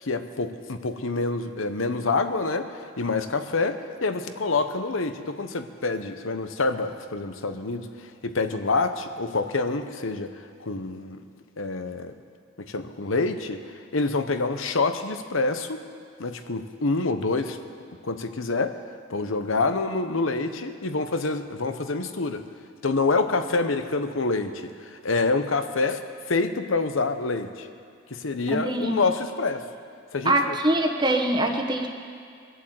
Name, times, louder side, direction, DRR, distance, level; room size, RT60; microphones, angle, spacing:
voice 1, 0.0-11.2 11.6-12.1 12.6-13.6 13.9-15.8 16.2-17.6 18.0-18.8 19.1-22.4 22.8-27.7 28.1-29.6 30.1-30.6, left 3 dB, 85° left, 9 dB, 1.0 m, -27 dB
voice 2, 28.5-29.0 30.2-31.9, right 1 dB, 20° right, 3 dB, 1.2 m, -23 dB
23.0 x 8.2 x 7.7 m, 2.2 s
head